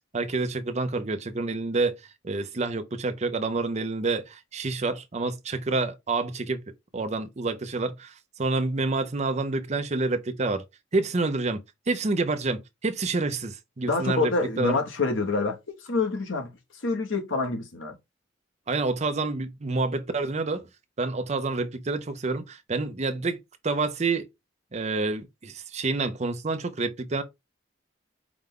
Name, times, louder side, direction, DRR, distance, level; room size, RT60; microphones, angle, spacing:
voice 1, 0.1-1.9 2.2-6.6 6.9-8.1 8.4-10.6 10.9-11.6 11.9-14.3 14.6-14.8 18.7-20.7 21.0-23.4 23.6-24.3 24.7-27.2, right 3 dB, 35° right, 0.6 m, -28 dB
voice 2, 13.9-16.5 16.8-17.9, left 3 dB, 80° left, 1.0 m, -27 dB
4.9 x 2.2 x 3.6 m
head